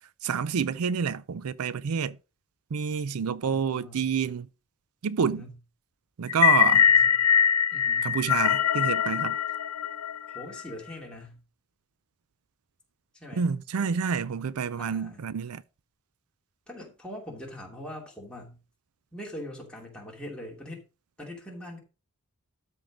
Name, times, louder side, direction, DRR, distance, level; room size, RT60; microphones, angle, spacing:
voice 1, 0.2-2.2 2.7-4.5 5.0-5.4 6.2-6.8 8.0-9.4 13.4-15.6, right 6 dB, 80° right, 0.5 m, -28 dB
voice 2, 3.4-4.1 5.2-5.5 6.9-7.2 7.7-8.2 10.3-11.4 13.1-13.5 14.8-15.3 16.7-18.6 19.1-20.8 21.2-21.8, left 1 dB, 5° left, 2.8 m, -42 dB
sound 1, 6.3-10.6, left 9 dB, 85° left, 0.8 m, -22 dB
12.5 x 4.6 x 5.1 m
head